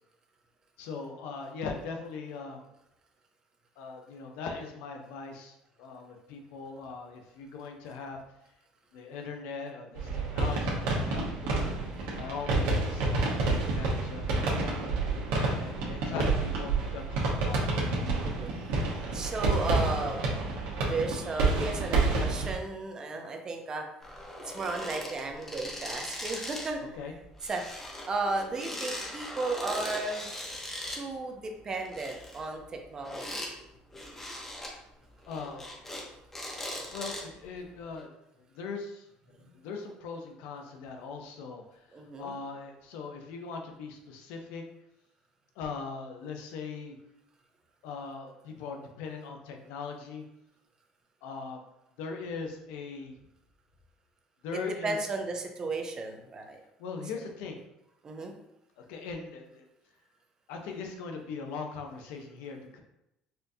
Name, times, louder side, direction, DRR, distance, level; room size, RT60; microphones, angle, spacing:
voice 1, 0.8-2.6 3.8-8.2 8.9-11.7 12.1-14.7 15.3-17.7 26.8-27.1 30.9-31.1 35.3-35.7 36.9-38.1 38.5-44.6 45.6-47.0 47.8-50.2 51.2-51.6 52.0-53.1 54.4-55.0 56.8-57.6 58.8-59.7 60.5-62.8, left 4 dB, 85° left, 3 dB, 0.6 m, -40 dB
sound 1, 10.0-22.6, right 3 dB, 85° right, 0.9 m, -29 dB
voice 2, 19.1-20.2 20.9-23.8 24.5-26.8 27.5-27.6 28.1-30.3 30.9-33.6 41.9-42.3 54.8-56.6 58.0-58.3, right 3 dB, 25° right, 3 dB, 0.5 m, -34 dB
sound 2, 24.0-26.8 27.0-31.0 31.7-33.5 33.9-34.7 35.2-36.0 36.3-37.4 38.0-38.1, left 1 dB, 15° left, 0.7 m, -39 dB
4.3 x 2.5 x 2.7 m, 0.87 s
cardioid pair, 140°, 2 cm